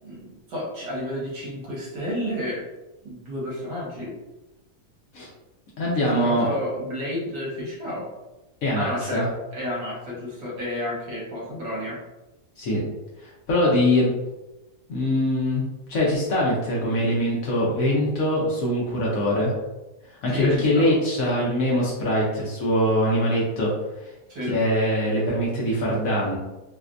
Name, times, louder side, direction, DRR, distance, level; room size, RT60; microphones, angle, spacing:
voice 1, 0.0-2.6 3.0-4.2 5.9-8.1 8.7-9.3 9.5-12.0 20.3-21.0 24.3-24.6, left 1 dB, 80° right, -5 dB, 1.8 m, -31 dB
voice 2, 5.8-6.5 8.6-9.3 12.6-12.8 13.2-14.1 14.9-15.6 15.9-19.5 20.2-23.7 24.0-24.1 24.4-26.4, left 1 dB, 65° left, -5 dB, 1.1 m, -23 dB
4.1 x 2.1 x 2.4 m, 1.0 s
omnidirectional pair, 1.7 m